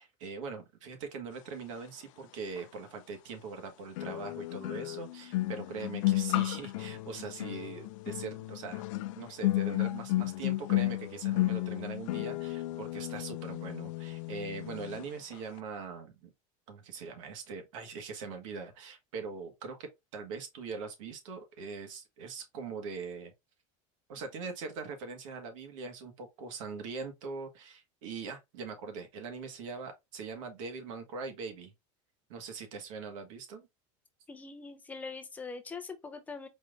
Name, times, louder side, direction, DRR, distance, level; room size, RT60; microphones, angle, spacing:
voice 1, 0.0-8.8 9.1-16.3 16.7-23.3 24.1-31.7 32.3-33.7, right 5 dB, 75° right, 1.5 m, -42 dB
sound 1, 2.6-2.7 4.0-15.1 15.3-15.6, left 17 dB, 75° left, 0.4 m, -33 dB
voice 2, 34.3-36.5, left 4 dB, 10° left, 0.5 m, -42 dB
4.4 x 2.6 x 3.5 m
supercardioid pair, 175°, 17 cm